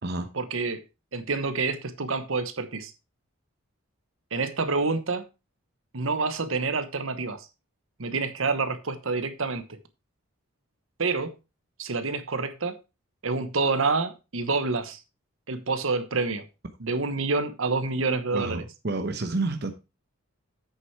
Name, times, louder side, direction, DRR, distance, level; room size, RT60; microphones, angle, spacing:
voice 1, 0.3-0.8 1.1-2.9 4.3-5.2 5.9-7.5 8.0-9.8 11.0-11.3 11.8-12.7 13.2-15.0 15.5-16.4 16.8-18.6, right 3 dB, 70° right, 11 dB, 1.1 m, -27 dB
voice 2, 18.3-19.7, right 2 dB, 50° right, 6 dB, 0.9 m, -29 dB
8.5 x 6.7 x 4.6 m, 0.28 s
head